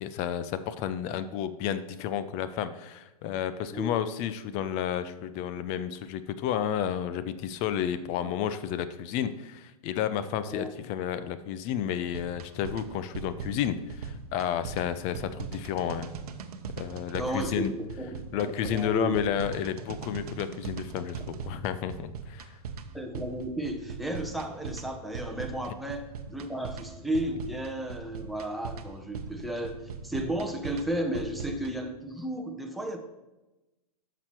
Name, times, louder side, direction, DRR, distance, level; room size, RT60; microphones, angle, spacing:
voice 1, 0.0-16.1 16.8-17.7 18.3-22.6, left 9 dB, 35° left, 13 dB, 0.5 m, -31 dB
sound 1, 12.1-31.7, right 5 dB, 75° right, 0.8 m, -40 dB
voice 2, 17.2-17.7 18.0-19.1 22.9-26.0 26.3-29.8 30.0-33.0, right 1 dB, ahead, 2 dB, 0.9 m, -33 dB
8.7 x 6.1 x 4.5 m, 1.0 s
hypercardioid pair, 130°, 20 cm